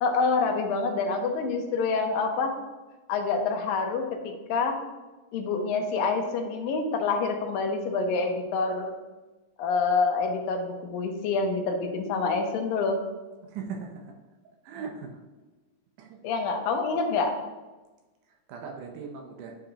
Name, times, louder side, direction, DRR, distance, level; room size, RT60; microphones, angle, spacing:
voice 1, 0.0-2.6 3.1-4.8 5.3-9.0 9.6-13.0 16.2-17.4, left 4 dB, 80° left, 4 dB, 2.6 m, -27 dB
voice 2, 13.4-14.2 14.6-15.2 16.0-16.2 18.5-19.6, right 5 dB, 75° right, 2 dB, 2.1 m, -39 dB
10.0 x 5.3 x 2.9 m, 1.2 s
omnidirectional pair, 4.0 m